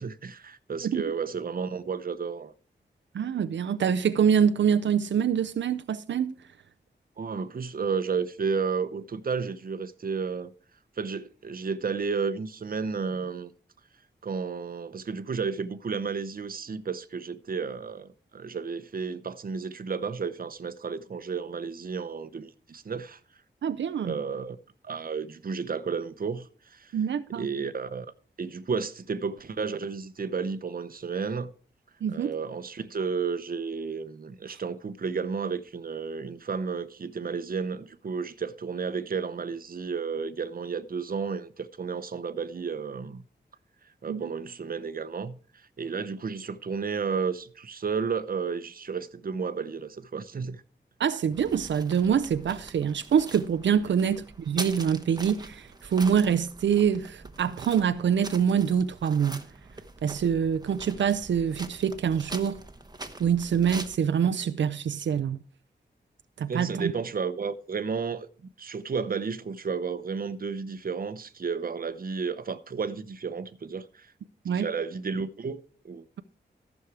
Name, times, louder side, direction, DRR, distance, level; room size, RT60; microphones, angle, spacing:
voice 1, 0.0-2.5 7.2-10.5 11.0-13.5 14.2-23.2 24.0-24.6 24.8-26.9 27.4-28.1 28.4-31.5 32.1-43.2 44.0-50.6 53.8-53.9 66.5-68.3 68.6-74.1 74.5-76.0, right 5 dB, 50° right, 0.8 m, -32 dB
voice 2, 3.1-6.5 23.6-24.1 26.9-27.5 32.0-32.3 34.5-34.6 44.1-44.3 51.0-59.4 60.0-62.6 63.2-65.4 66.4-66.9 74.4-74.7, right 7 dB, 90° right, 0.5 m, -25 dB
sound 1, 51.3-64.0, right 2 dB, 20° right, 1.1 m, -43 dB
14.5 x 6.4 x 4.7 m
wide cardioid pair, 95°, 19 cm